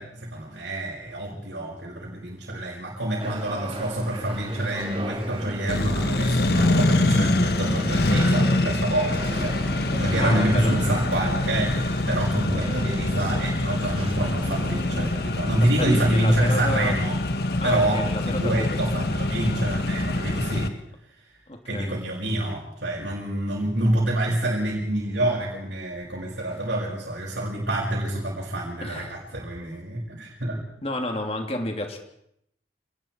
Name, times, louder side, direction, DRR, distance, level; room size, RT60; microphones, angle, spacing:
voice 1, 0.0-9.6 9.9-17.2 17.6-20.7 21.7-30.6, right 1 dB, 75° right, -4 dB, 6.3 m, -27 dB
sound 1, 3.2-15.1, right 1 dB, 30° right, 2.6 m, -37 dB
Accelerating revving vroom, 5.7-20.7, left 2 dB, 60° left, 1.4 m, -25 dB
voice 2, 10.2-10.8 15.8-17.0 17.6-18.8 21.5-21.9 28.8-29.2 30.8-32.0, left 1 dB, 35° left, 3 dB, 2.9 m, -30 dB
28.5 x 20.0 x 4.6 m, 0.76 s
head